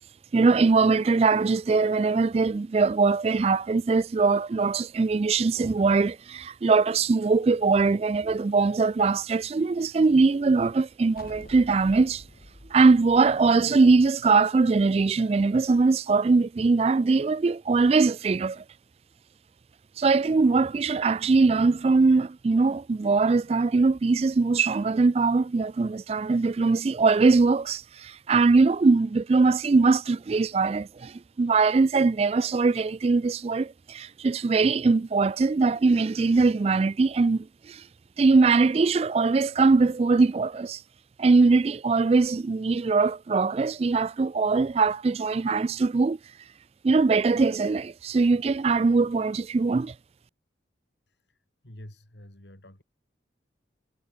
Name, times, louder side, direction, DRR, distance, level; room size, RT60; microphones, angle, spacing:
voice 1, 0.3-12.2 12.7-18.6 20.0-37.8 38.2-40.8 41.2-46.2 46.8-49.9, right 4 dB, 35° right, 0.3 m, -22 dB
sound 1, 11.2-14.6, left 1 dB, 50° left, 2.9 m, -48 dB
voice 2, 51.1-52.8, left 1 dB, 70° left, 3.7 m, -48 dB
head